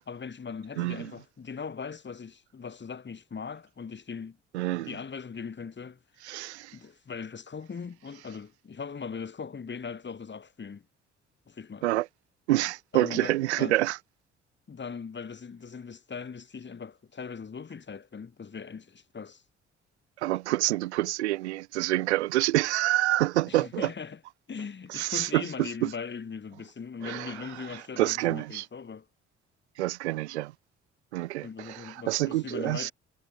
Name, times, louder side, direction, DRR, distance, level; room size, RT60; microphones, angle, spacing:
voice 1, 0.1-4.4 4.7-6.3 6.7-10.9 11.5-11.9 12.9-13.8 14.7-19.4 23.5-24.2 24.5-29.1 31.4-32.9, left 5 dB, 35° left, 3.7 m, -40 dB
voice 2, 0.8-1.1 4.5-5.0 6.2-6.8 11.8-12.1 12.5-14.0 20.2-23.9 24.9-25.9 27.0-28.6 29.8-30.5 31.1-32.9, right 17 dB, 75° right, 1.2 m, -27 dB
figure-of-eight pair, 45°, 34 cm